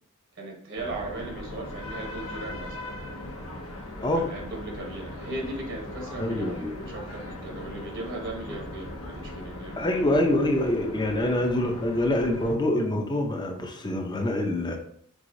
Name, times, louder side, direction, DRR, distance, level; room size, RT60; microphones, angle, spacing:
voice 1, 0.4-2.9 4.1-10.0 11.1-11.3, right 2 dB, 60° right, 0 dB, 0.9 m, -37 dB
sound 1, 0.7-12.5, left 1 dB, 85° left, 0.9 m, -39 dB
voice 2, 6.2-6.7 9.7-14.8, left 1 dB, 20° left, 3 dB, 0.6 m, -25 dB
4.8 x 3.6 x 2.6 m, 0.64 s
head